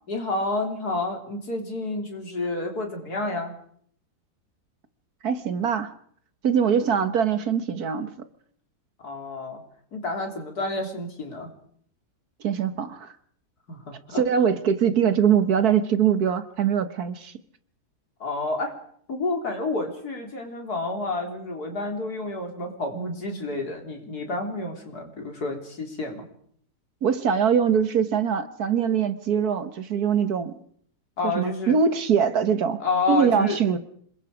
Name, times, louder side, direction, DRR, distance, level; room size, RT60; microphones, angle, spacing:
voice 1, 0.1-3.5 9.0-9.6 9.9-11.5 13.7-13.8 14.1-14.4 18.2-18.7 19.1-26.3 31.2-31.8 32.8-33.6, left 2 dB, 65° left, 3 dB, 4.1 m, -29 dB
voice 2, 5.2-5.9 6.4-8.1 12.4-13.1 14.2-17.3 27.0-30.6 31.3-32.8 33.1-33.8, right 7 dB, 65° right, 11 dB, 1.7 m, -22 dB
27.0 x 21.5 x 5.0 m, 0.63 s
omnidirectional pair, 1.8 m